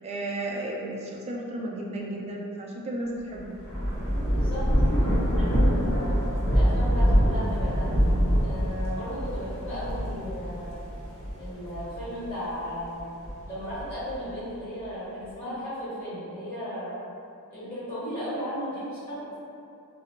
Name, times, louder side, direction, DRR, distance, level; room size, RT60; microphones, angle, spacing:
voice 1, 0.0-3.6, right 1 dB, 30° right, -2 dB, 0.3 m, -33 dB
Thunder / Rain, 3.4-12.3 12.8-14.2, equal, 65° left, 0.8 m, -25 dB
voice 2, 4.3-6.1 6.5-7.9 8.4-10.7 11.4-13.1 13.5-16.9 17.5-19.4, equal, 30° left, -13 dB, 0.9 m, -35 dB
2.3 x 2.0 x 3.1 m, 2.6 s
head